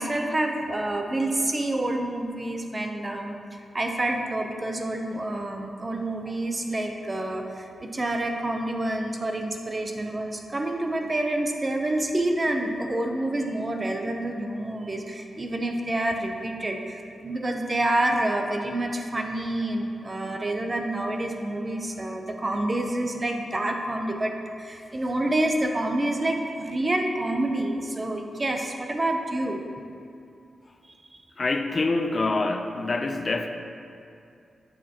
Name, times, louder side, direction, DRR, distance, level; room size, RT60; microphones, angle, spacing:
voice 1, 0.0-3.4 3.7-29.6 31.1-31.2, right 1 dB, 30° right, 3 dB, 0.7 m, -28 dB
voice 2, 31.4-33.5, left 3 dB, 45° left, 6 dB, 0.4 m, -26 dB
8.1 x 6.7 x 2.9 m, 2.5 s
cardioid pair, 85°, 0 cm